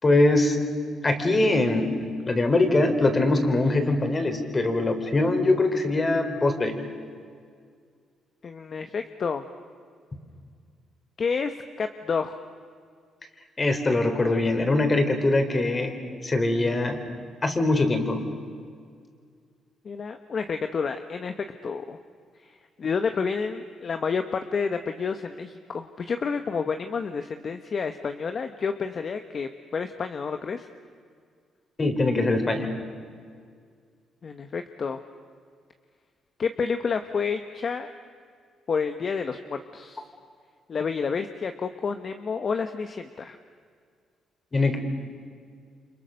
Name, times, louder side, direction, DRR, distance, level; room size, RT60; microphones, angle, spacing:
voice 1, 0.0-0.6 1.0-6.8 13.6-15.9 16.2-17.0 17.4-18.2 31.8-32.7 44.5-44.8, left 2 dB, 30° left, 6 dB, 4.1 m, -22 dB
voice 2, 8.4-9.4 11.2-12.4 19.8-22.0 22.4-30.7 34.2-35.0 36.4-37.9 38.7-40.1 40.7-43.4, left 5 dB, 45° left, 7 dB, 1.2 m, -29 dB
29.5 x 26.5 x 6.6 m, 2.1 s
cardioid pair, 90°, 0 cm